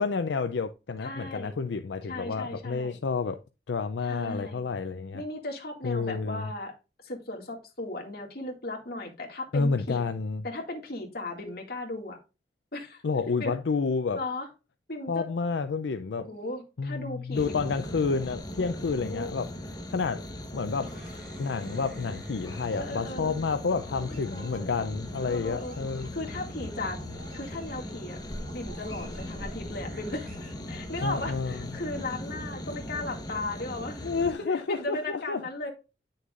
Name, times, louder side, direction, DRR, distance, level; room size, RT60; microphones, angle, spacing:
voice 1, 0.0-3.4 3.7-5.2 5.8-6.5 9.5-10.4 13.0-14.2 15.1-16.3 16.8-19.5 19.9-21.0 21.4-26.1 31.0-31.7 34.0-35.4, left 4 dB, 90° left, 0.5 m, -30 dB
voice 2, 1.0-1.5 2.1-3.0 4.0-4.6 5.1-6.7 7.0-10.0 10.4-12.2 12.7-13.0 13.4-13.6 14.1-14.5 14.9-15.2 16.2-17.7 18.6-19.3 20.5-21.0 22.7-23.3 23.9-24.7 25.3-25.8 26.1-27.0 27.3-28.2 28.5-34.1 34.4-35.7, left 2 dB, 60° left, 2.1 m, -37 dB
sound 1, 17.3-34.3, left 1 dB, 25° left, 1.1 m, -39 dB
sound 2, 20.8-31.4, right 1 dB, 50° right, 2.3 m, -52 dB
9.2 x 6.5 x 2.5 m
head